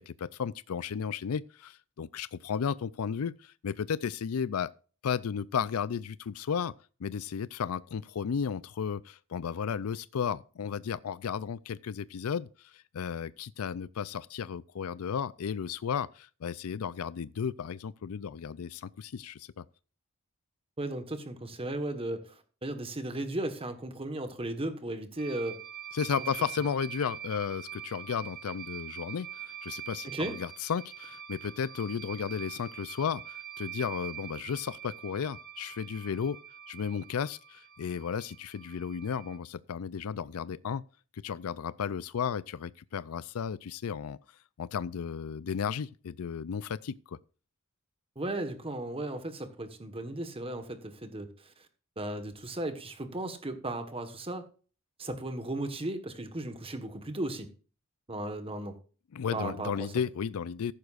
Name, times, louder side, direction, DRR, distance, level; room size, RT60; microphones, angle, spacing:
voice 1, 0.0-4.7 5.0-6.8 7.0-19.6 25.9-36.4 36.7-40.8 41.1-44.2 44.6-47.2 59.1-60.7, left 7 dB, 75° left, 0.4 m, -34 dB
voice 2, 20.8-25.6 30.1-30.3 48.1-51.7 52.0-54.4 55.0-57.5 58.1-58.8 59.3-59.9, right 1 dB, 25° right, 1.4 m, -36 dB
sound 1, 25.2-39.4, right 10 dB, 45° right, 1.4 m, -44 dB
14.5 x 11.0 x 2.5 m
head